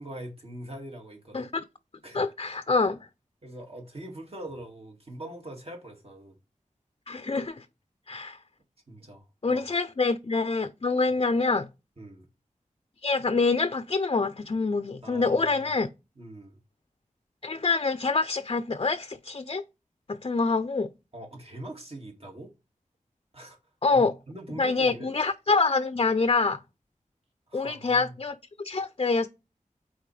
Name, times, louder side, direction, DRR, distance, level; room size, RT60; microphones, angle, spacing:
voice 1, 0.0-1.5 2.0-2.2 3.4-6.4 8.9-9.6 12.0-12.3 15.0-15.8 16.2-16.6 21.1-22.5 23.3-23.6 23.9-25.1 27.5-28.2, right 1 dB, 45° right, 2.1 m, -42 dB
voice 2, 1.3-1.6 2.1-3.0 7.1-7.6 8.1-8.4 9.4-11.7 13.0-15.9 17.4-19.6 20.1-20.9 23.8-24.1 24.6-26.6 27.5-29.3, left 4 dB, 40° left, 0.5 m, -26 dB
8.2 x 4.3 x 3.3 m
wide cardioid pair, 80°, 14 cm